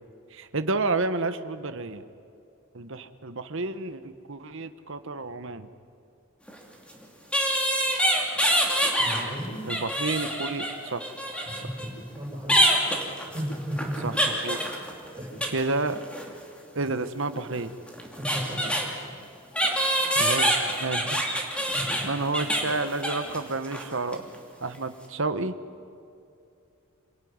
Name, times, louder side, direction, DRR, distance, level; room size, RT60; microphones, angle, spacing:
voice 1, 0.3-2.1 2.7-5.7 9.7-11.1 14.0-14.6 15.5-16.0 16.7-17.7 20.1-21.2 22.0-24.2 24.6-25.5, right 3 dB, 60° right, 10 dB, 1.2 m, -30 dB
sound 1, 6.5-6.6 7.3-9.2 9.6-11.9 12.5-15.6 15.9-16.3 17.6-17.7 17.9-18.9 19.5-23.4 23.6-23.8 24.1-24.3, equal, 5° left, 2.8 m, -26 dB
voice 2, 9.0-9.6 11.5-12.7 13.3-14.1 15.1-15.4 18.2-18.8 21.7-22.1, equal, 20° right, -6 dB, 7.9 m, -35 dB
27.0 x 18.5 x 9.6 m, 2.5 s
head